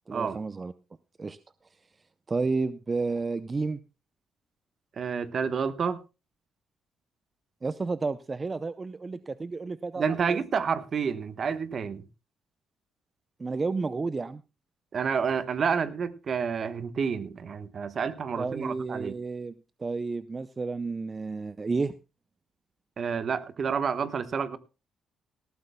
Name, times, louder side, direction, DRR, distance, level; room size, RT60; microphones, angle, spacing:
voice 1, 0.1-0.7 1.2-1.4 2.3-3.8 7.6-10.4 13.4-14.4 18.4-19.5 19.8-21.9, right 4 dB, 30° right, 14 dB, 0.5 m, -31 dB
voice 2, 5.0-6.0 10.0-12.0 14.9-19.2 23.0-24.6, right 6 dB, 50° right, 13 dB, 1.1 m, -29 dB
18.5 x 14.0 x 2.2 m, 0.29 s
cardioid pair, 90°, 0 cm